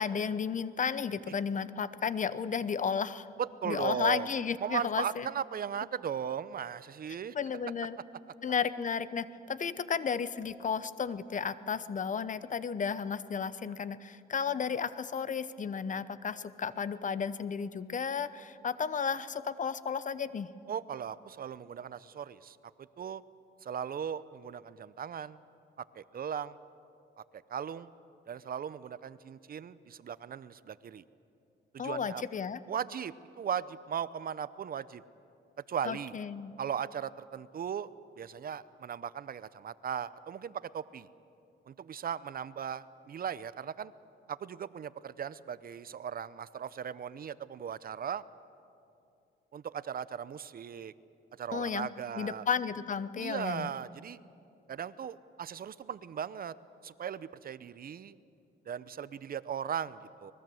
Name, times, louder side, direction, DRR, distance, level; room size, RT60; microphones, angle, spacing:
voice 1, 0.0-3.3 3.6-5.3 7.3-8.0 8.4-20.5 31.8-32.6 35.9-36.5 51.5-51.9 52.2-53.7, left 6 dB, 40° left, 15 dB, 0.9 m, -33 dB
voice 2, 3.4-4.3 4.6-7.3 20.7-22.6 23.0-23.2 23.6-25.4 25.9-26.6 27.3-27.9 28.3-31.0 31.7-32.2 32.7-35.0 35.7-36.2 36.6-37.9 38.2-41.1 41.7-43.9 44.3-48.2 49.5-50.9 51.4-52.4 53.2-54.2 54.7-56.5 56.8-58.1 58.7-60.3, right 8 dB, 45° right, 17 dB, 0.7 m, -37 dB
24.5 x 21.0 x 7.8 m, 2.6 s
cardioid pair, 90°, 20 cm